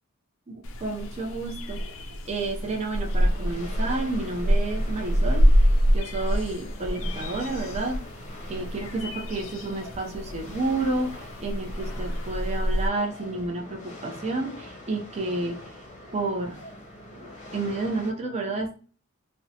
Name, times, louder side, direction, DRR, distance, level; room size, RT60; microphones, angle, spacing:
voice 1, 0.5-8.0 8.5-16.6 17.2-18.8, right 2 dB, 30° right, 1 dB, 0.5 m, -31 dB
sound 1, 0.6-12.9, equal, 65° left, 0.4 m, -26 dB
sound 2, 3.0-18.1, left 1 dB, 35° left, 0.7 m, -44 dB
2.5 x 2.1 x 2.7 m, 0.38 s
head